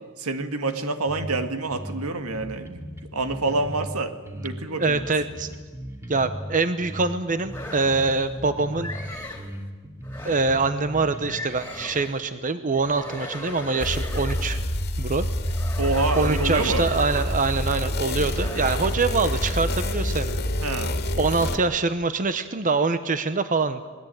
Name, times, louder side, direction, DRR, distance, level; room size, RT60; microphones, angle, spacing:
voice 1, 0.2-2.8 3.1-5.0 15.8-16.9 20.6-21.0, right 3 dB, 80° right, 8 dB, 1.9 m, -27 dB
sound 1, 1.1-1.4 1.7-3.9 4.3-6.5 6.8-9.0 9.4-11.3, equal, 15° right, 2.5 m, -37 dB
voice 2, 4.8-5.5 6.1-8.9 10.2-14.6 15.0-15.3 16.1-20.4 21.2-23.9, right 3 dB, 35° right, 11 dB, 0.9 m, -24 dB
sound 2, 7.5-8.3 8.8-9.5 10.0-10.7 11.2-12.2 12.7-14.7 15.4-17.6 18.3-19.1, left 1 dB, 10° left, 3.2 m, -38 dB
sound 3, 13.8-21.6, left 1 dB, 45° left, 2.1 m, -27 dB
26.5 x 20.5 x 9.1 m, 1.4 s
head